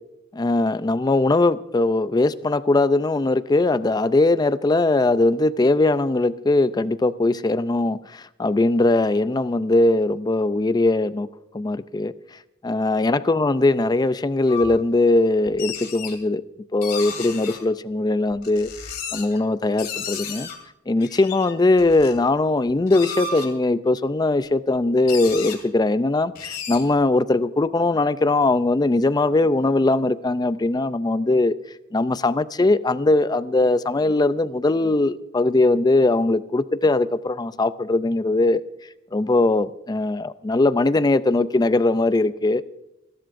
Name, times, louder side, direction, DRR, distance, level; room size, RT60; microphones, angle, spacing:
voice 1, 0.3-11.3 11.5-12.1 12.6-16.4 16.7-18.7 19.1-20.5 20.9-31.5 31.9-38.6 39.1-42.6, left 2 dB, 20° left, 0.4 m, -20 dB
sound 1, 14.5-14.7 15.5-16.2 16.8-17.6 18.3-19.4 19.8-20.6 21.0-22.1 22.7-23.5 24.4-24.5 24.7-24.8 25.1-25.6 26.3-26.8, left 5 dB, 50° left, 2.5 m, -33 dB
29.5 x 12.0 x 2.6 m
head